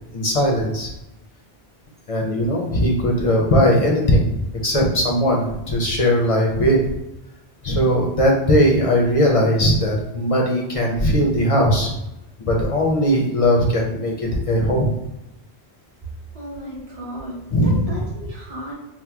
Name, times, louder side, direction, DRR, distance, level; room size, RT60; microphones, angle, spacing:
voice 1, 0.1-0.9 2.1-4.3 4.6-6.9 7.6-11.9 12.4-14.9 17.5-18.0, equal, 45° left, -1 dB, 0.5 m, -19 dB
voice 2, 16.3-18.9, equal, 35° right, -4 dB, 0.9 m, -35 dB
2.9 x 2.1 x 3.4 m, 0.92 s
omnidirectional pair, 1.1 m